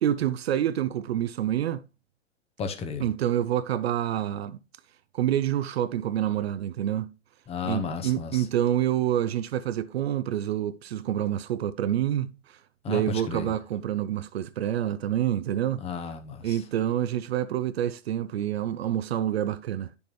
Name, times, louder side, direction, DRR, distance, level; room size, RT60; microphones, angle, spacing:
voice 1, 0.0-1.8 3.0-4.6 5.1-7.1 7.6-12.3 12.9-15.8 16.4-19.9, right 11 dB, 55° right, 0.6 m, -27 dB
voice 2, 2.6-3.0 7.5-8.4 12.8-13.0 13.3-13.5 15.8-16.4, left 5 dB, 15° left, 0.8 m, -33 dB
10.0 x 7.0 x 3.1 m
figure-of-eight pair, 115°, 38 cm